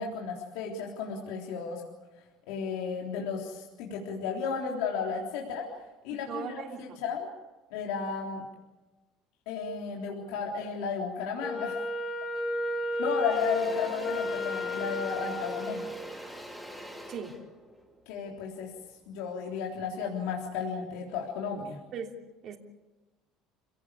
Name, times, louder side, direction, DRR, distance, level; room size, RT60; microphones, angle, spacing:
voice 1, 0.0-1.8 2.5-5.7 6.0-7.3 7.7-8.5 9.5-11.8 12.6-15.9 18.1-18.7 19.1-21.8, left 5 dB, 80° left, -1 dB, 3.7 m, -34 dB
voice 2, 6.1-7.0 17.1-17.3 21.9-22.2 22.4-22.6, right 6 dB, 40° right, 2 dB, 3.1 m, -38 dB
Wind instrument woodwind instrument, 11.4-16.1, left 2 dB, 25° left, 4.8 m, -32 dB
Engine / Drill, 12.4-12.6 12.9-19.1, equal, ahead, 3.1 m, -44 dB
29.0 x 18.0 x 8.4 m, 1.2 s
cardioid pair, 165°, 0 cm